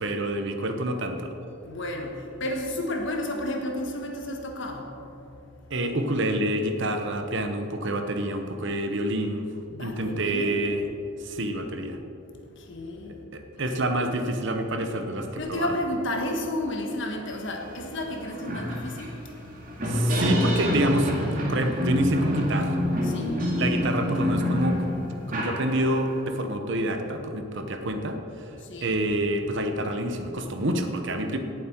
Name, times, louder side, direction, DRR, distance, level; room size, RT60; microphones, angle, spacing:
voice 1, 0.0-1.4 5.7-9.5 9.8-10.8 11.2-12.0 13.3-15.7 19.8-21.1 21.5-22.8 23.6-24.8 25.3-28.2 28.8-31.4, right 1 dB, 55° right, 5 dB, 0.9 m, -27 dB
voice 2, 1.6-4.9 9.7-10.6 12.6-13.2 13.6-13.7 15.3-19.1 23.0-23.5 28.6-29.0, left 1 dB, 55° left, 2 dB, 1.5 m, -32 dB
sound 1, 17.7-17.8 18.1-26.2, equal, 40° right, 2.3 m, -27 dB
17.5 x 7.4 x 4.5 m, 3.0 s
head